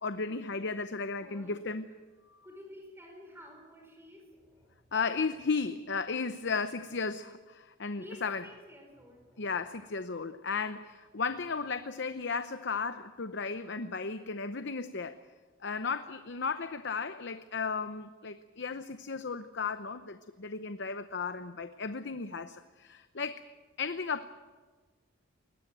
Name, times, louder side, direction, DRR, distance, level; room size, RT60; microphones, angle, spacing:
voice 1, 0.0-1.9 2.3-2.4 4.9-8.5 9.4-15.2 15.6-23.4 23.8-24.2, left 4 dB, 55° left, 10 dB, 0.8 m, -35 dB
voice 2, 1.2-1.5 2.4-4.7 8.0-9.5, equal, 10° right, 2 dB, 5.7 m, -51 dB
21.5 x 18.5 x 9.1 m, 1.4 s
head